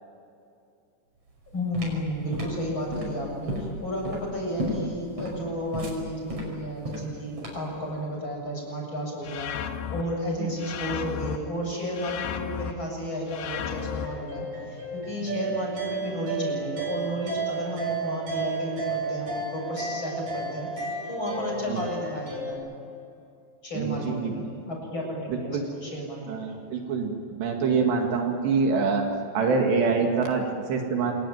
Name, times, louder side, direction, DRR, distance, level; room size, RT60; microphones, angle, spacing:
sound 1, 1.3-7.8, equal, 30° right, 6.5 m, -34 dB
voice 1, 1.5-9.5 9.9-22.7 23.6-26.5, equal, 25° left, -1 dB, 7.9 m, -32 dB
sound 2, 9.2-10.0 10.6-11.4 11.9-12.7 13.3-14.1, left 9 dB, 80° left, 3.5 m, -33 dB
sound 3, 13.5-22.5, right 3 dB, 50° right, 8.0 m, -33 dB
voice 2, 23.7-24.3 25.3-25.6 26.3-29.1 29.3-31.1, right 5 dB, 70° right, 2 dB, 4.2 m, -25 dB
27.5 x 23.0 x 9.5 m, 2.6 s
omnidirectional pair, 5.3 m